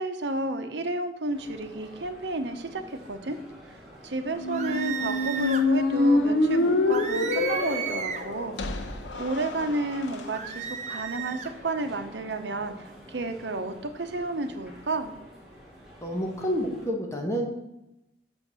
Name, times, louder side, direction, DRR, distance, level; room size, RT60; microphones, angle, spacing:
voice 1, 0.0-3.4 4.0-8.6 9.1-15.1, right 2 dB, 70° right, 8 dB, 0.8 m, -32 dB
sound 1, 1.3-16.9, equal, ahead, 2.4 m, -48 dB
Squeak, 4.3-10.2, left 2 dB, 85° left, 0.8 m, -26 dB
sound 2, 4.5-5.7 6.9-8.3 10.3-11.5, right 7 dB, 40° right, 0.7 m, -34 dB
voice 2, 16.0-17.5, equal, 15° left, 0 dB, 1.0 m, -29 dB
7.0 x 4.6 x 6.7 m, 0.87 s
head